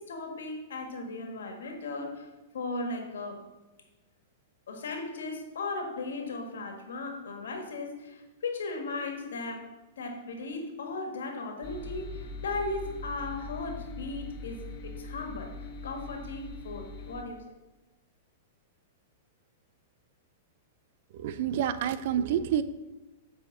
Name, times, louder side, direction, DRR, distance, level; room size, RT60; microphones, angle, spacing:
voice 1, 0.0-2.3 2.5-3.4 4.7-9.6 10.0-15.5 15.8-17.4, left 3 dB, 80° left, 3 dB, 1.6 m, -36 dB
sound 1, 11.6-17.2, left 2 dB, 50° left, 1.3 m, -41 dB
voice 2, 21.1-22.6, right 9 dB, 60° right, 13 dB, 0.5 m, -28 dB
7.5 x 5.0 x 6.0 m, 1.1 s
hypercardioid pair, 115°, 0 cm